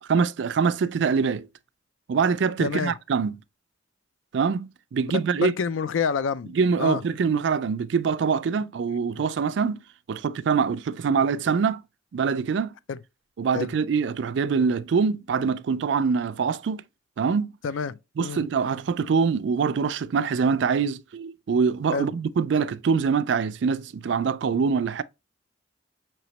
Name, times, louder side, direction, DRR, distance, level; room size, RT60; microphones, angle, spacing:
voice 1, 0.1-1.5 2.1-3.4 4.3-5.5 6.5-9.8 10.1-11.8 12.1-12.7 13.4-16.8 17.2-17.5 18.2-25.0, right 5 dB, 70° right, 0.3 m, -24 dB
voice 2, 2.6-2.9 5.0-5.1 5.4-7.0 12.9-13.0 13.5-13.7 17.6-18.4 21.9-22.1, left 6 dB, 90° left, 0.4 m, -28 dB
5.7 x 3.1 x 2.8 m
head